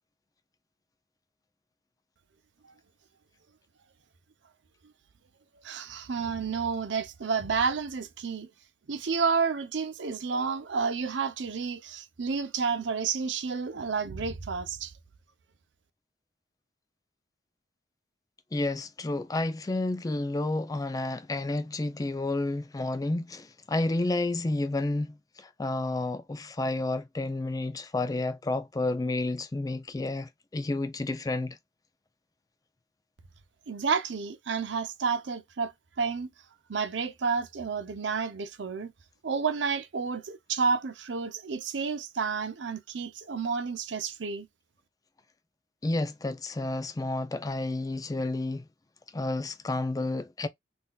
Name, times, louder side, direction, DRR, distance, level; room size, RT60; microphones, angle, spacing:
voice 1, 5.6-8.5 8.9-14.9 33.7-36.3 36.7-38.9 39.2-44.5, right 5 dB, 75° right, 0.6 m, -30 dB
voice 2, 18.5-31.6 45.8-48.7 49.1-50.5, left 2 dB, 20° left, 0.4 m, -30 dB
3.8 x 2.6 x 2.3 m
head